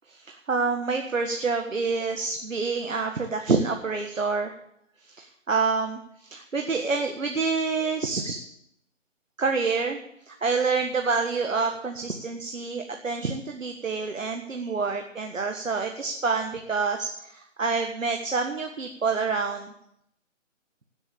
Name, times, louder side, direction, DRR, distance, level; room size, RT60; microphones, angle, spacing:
voice 1, 0.1-4.5 5.0-8.4 9.4-10.0 10.3-19.7, right 4 dB, 75° right, 4 dB, 1.6 m, -27 dB
16.5 x 7.1 x 7.3 m, 0.75 s
figure-of-eight pair, 155°, 39 cm